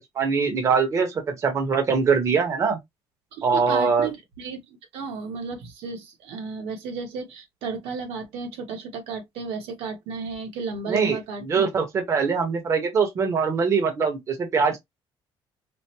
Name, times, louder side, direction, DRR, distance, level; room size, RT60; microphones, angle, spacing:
voice 1, 0.1-2.8 3.4-4.1 10.9-14.8, right 5 dB, 30° right, 1.1 m, -23 dB
voice 2, 3.3-11.7, right 5 dB, 80° right, 1.3 m, -33 dB
5.0 x 2.1 x 2.9 m
cardioid pair, 170°, 10 cm